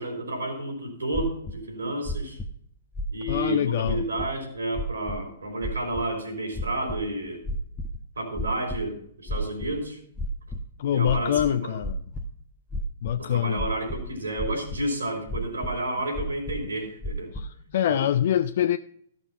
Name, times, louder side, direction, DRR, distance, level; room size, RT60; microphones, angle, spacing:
voice 1, 0.0-2.4 3.1-7.4 8.2-10.0 10.9-11.7 13.2-17.3 17.9-18.0, right 1 dB, 75° right, 3.9 m, -31 dB
sound 1, 1.1-1.6 2.0-2.5 2.9-3.5 3.9-4.3 4.8-5.2 5.6-6.0 6.5-7.0 7.4-8.0 8.3-8.8 9.3-9.8 10.2-10.6 11.0-12.2 12.7-13.1 13.6-14.1 14.4-14.8 15.3-15.7 16.1-16.7 17.0-17.4, equal, 10° left, 0.9 m, -32 dB
voice 2, 3.3-4.0 10.8-12.0 13.0-13.6 17.3-18.8, left 10 dB, 55° left, 0.4 m, -25 dB
14.5 x 6.0 x 5.6 m
figure-of-eight pair, 115°, 0 cm